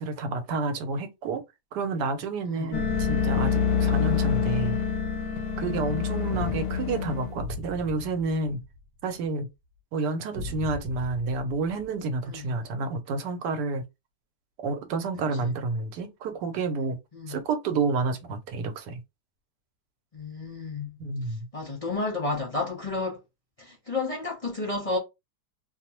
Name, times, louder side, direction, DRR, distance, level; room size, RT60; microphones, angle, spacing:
voice 1, 0.0-1.4 1.7-4.8 5.6-8.6 9.0-9.5 9.9-13.8 14.6-17.0 17.3-19.0 21.0-21.5, right 3 dB, 90° right, 1.2 m, -29 dB
sound 1, 2.7-7.3, left 6 dB, 85° left, 1.2 m, -26 dB
sound 2, 6.3-9.3 10.3-12.5, left 1 dB, 60° right, 1.1 m, -39 dB
voice 2, 20.1-21.0 21.5-23.2 23.6-25.0, left 3 dB, 35° left, 0.6 m, -31 dB
2.9 x 2.0 x 2.9 m
omnidirectional pair, 1.8 m